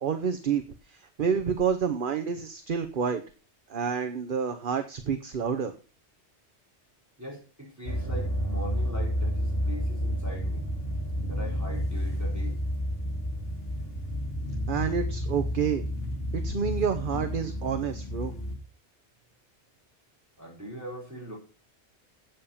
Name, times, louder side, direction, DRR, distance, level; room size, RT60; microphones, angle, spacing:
voice 1, 0.0-3.2 3.7-5.7 14.7-15.8 16.3-18.3, right 6 dB, 50° right, 8 dB, 1.0 m, -29 dB
voice 2, 7.2-10.7 11.3-12.6 20.4-21.4, equal, 15° right, -3 dB, 4.7 m, -41 dB
sound 1, 7.9-18.6, equal, 60° left, 2.3 m, -31 dB
8.5 x 7.7 x 7.0 m, 0.36 s
omnidirectional pair, 1.2 m